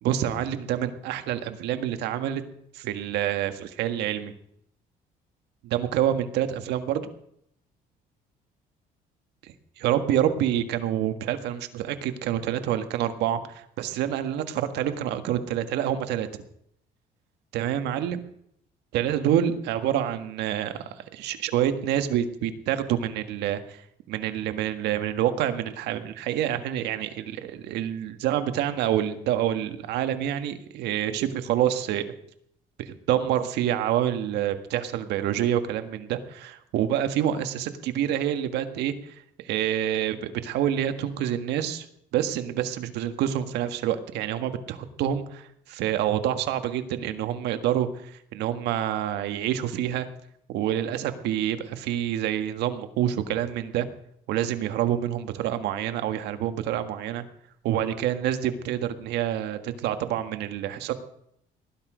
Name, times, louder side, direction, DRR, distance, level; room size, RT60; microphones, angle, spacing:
voice 1, 0.0-2.4 2.7-4.3 5.6-7.1 9.4-16.3 17.5-18.2 18.9-23.8 24.1-32.0 32.8-39.1 39.4-41.9 42.1-50.1 50.5-53.9 54.3-57.2 57.6-60.9, right 11 dB, 85° right, 9 dB, 1.7 m, -27 dB
19.0 x 11.5 x 5.1 m, 0.71 s
cardioid pair, 110°, 17 cm